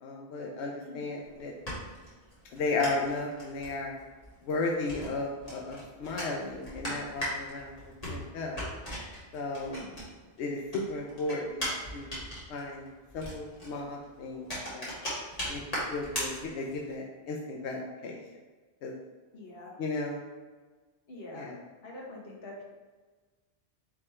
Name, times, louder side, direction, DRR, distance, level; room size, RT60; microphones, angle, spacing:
voice 1, 0.0-1.5 2.5-3.9 4.4-7.7 8.1-8.6 9.3-9.8 10.4-11.7 11.9-12.2 12.5-12.9 13.1-14.9 15.5-15.6 15.9-18.2 18.8-18.9 19.8-20.2 21.3-21.6, left 3 dB, 90° left, 0 dB, 0.9 m, -34 dB
voice 2, 0.8-1.2 9.6-10.0 19.3-19.7 21.1-21.5 21.8-22.6, left 1 dB, 65° left, -3 dB, 1.2 m, -44 dB
sound 1, 1.2-10.4 10.7-16.9, equal, 35° left, 1.5 m, -39 dB
3.8 x 3.1 x 4.2 m, 1.3 s
omnidirectional pair, 1.1 m